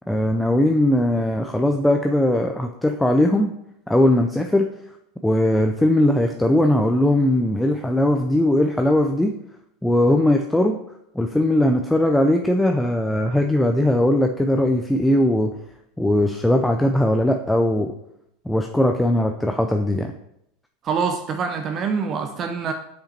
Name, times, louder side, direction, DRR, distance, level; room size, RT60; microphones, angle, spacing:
voice 1, 0.1-3.5 3.9-4.7 5.2-9.3 9.8-10.8 11.2-15.5 16.0-17.9 18.5-20.1, left 1 dB, 5° left, 3 dB, 0.5 m, -19 dB
voice 2, 20.8-22.7, right 5 dB, 40° right, 5 dB, 0.6 m, -25 dB
5.7 x 5.2 x 4.3 m, 0.78 s
supercardioid pair, 110°, 0 cm